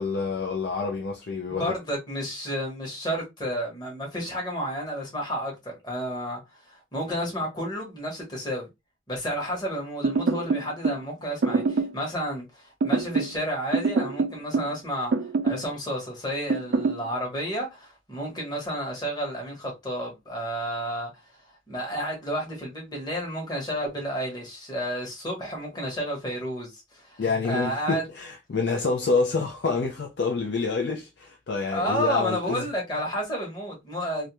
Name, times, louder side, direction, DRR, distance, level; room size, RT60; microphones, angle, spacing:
voice 1, 0.0-1.7 27.2-32.6, left 4 dB, 70° left, 0.4 m, -27 dB
voice 2, 1.5-8.7 9.1-15.1 15.4-28.0 31.7-34.3, equal, 25° left, 1.0 m, -31 dB
sound 1, 10.0-11.0 11.4-12.0 12.8-13.4 13.7-14.8 15.1-15.7 16.5-17.0, right 4 dB, 75° right, 0.4 m, -25 dB
2.4 x 2.1 x 2.9 m
head